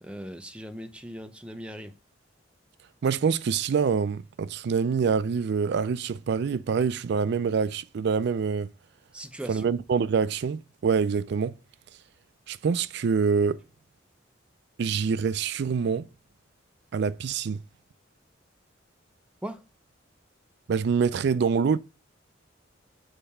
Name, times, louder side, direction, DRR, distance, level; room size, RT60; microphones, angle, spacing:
voice 1, 0.0-1.9 9.1-9.7 19.4-19.6, equal, 5° right, 0.5 m, -39 dB
voice 2, 3.0-8.7 9.5-11.6 12.5-13.6 14.8-16.1 16.9-17.6 20.7-21.8, right 6 dB, 60° right, 0.3 m, -25 dB
6.6 x 3.3 x 5.4 m
head